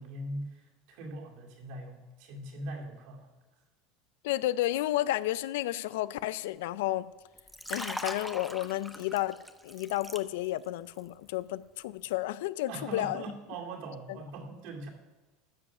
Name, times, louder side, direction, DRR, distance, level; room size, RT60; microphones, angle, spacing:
voice 1, 0.0-3.3 12.7-14.9, right 1 dB, 65° right, 0 dB, 2.2 m, -41 dB
voice 2, 4.2-7.1 7.7-13.2, left 15 dB, 80° left, 18 dB, 0.4 m, -32 dB
Liquid, 7.3-10.7 11.0-11.3, equal, ahead, 0.6 m, -40 dB
13.0 x 7.2 x 6.1 m, 1.2 s
supercardioid pair, 140°, 0 cm